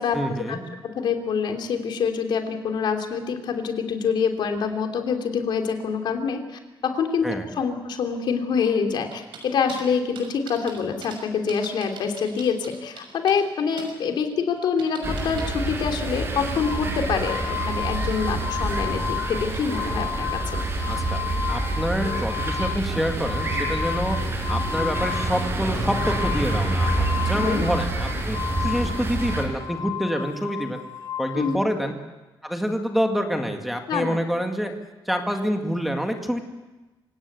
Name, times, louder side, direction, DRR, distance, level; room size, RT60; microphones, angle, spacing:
voice 1, 0.1-0.6 7.2-7.5 20.9-28.4 28.6-30.8 31.2-32.0 32.4-34.7 35.1-36.4, equal, ahead, 4 dB, 2.0 m, -27 dB
voice 2, 0.8-7.3 7.5-20.6 27.4-27.6 31.3-31.6 33.9-34.2, left 6 dB, 65° left, 4 dB, 3.1 m, -26 dB
sound 1, 9.1-9.8 10.2-11.2 11.5-13.5 13.8-13.9 14.3-15.4, right 6 dB, 80° right, 6.6 m, -41 dB
sound 2, 15.0-29.4, right 2 dB, 30° right, 6.2 m, -27 dB
sound 3, 16.6-31.5, left 9 dB, 40° left, 5.0 m, -33 dB
26.5 x 17.5 x 8.2 m, 1.1 s
cardioid pair, 150°, 8 cm